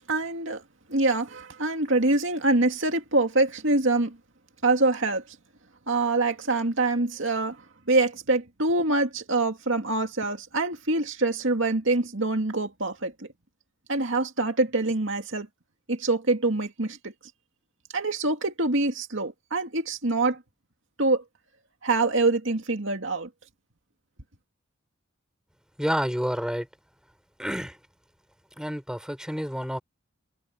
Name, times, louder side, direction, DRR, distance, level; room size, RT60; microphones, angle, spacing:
voice 1, 0.1-0.6 0.9-4.2 4.6-5.2 5.9-7.6 7.9-13.3 13.9-15.5 15.9-17.1 17.9-20.4 21.0-21.2 21.8-23.3, right 2 dB, 65° right, 2.4 m, -25 dB
voice 2, 25.8-26.7 27.4-27.8 28.6-29.8, equal, 5° right, 3.8 m, -29 dB
head